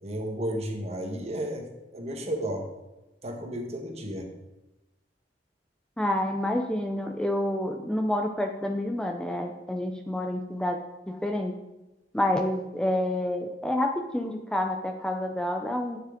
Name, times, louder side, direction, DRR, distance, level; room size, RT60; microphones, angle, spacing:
voice 1, 0.0-1.7 1.9-2.7 3.2-4.3, right 1 dB, 40° right, 3 dB, 1.3 m, -32 dB
voice 2, 6.0-10.8 11.1-11.5 12.1-16.0, left 1 dB, 5° left, 3 dB, 0.5 m, -28 dB
9.3 x 6.9 x 3.7 m, 1.0 s
head